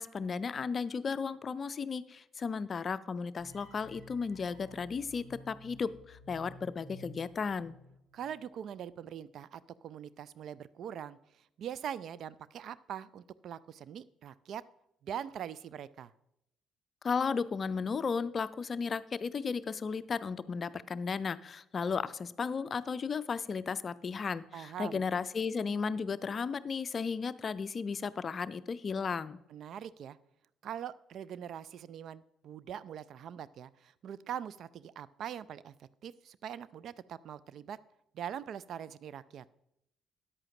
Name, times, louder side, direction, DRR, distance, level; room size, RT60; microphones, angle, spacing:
voice 1, 0.0-7.8 17.0-29.4, left 5 dB, 40° left, 16 dB, 0.4 m, -34 dB
sound 1, 3.4-8.5, left 1 dB, 90° right, 2.0 m, -54 dB
voice 2, 8.1-11.2 11.6-14.6 15.0-16.1 24.5-25.0 29.5-30.2 30.6-37.8 38.1-39.4, right 9 dB, 55° right, 18 dB, 0.3 m, -42 dB
13.5 x 9.7 x 2.9 m, 0.81 s
figure-of-eight pair, 45°, 0 cm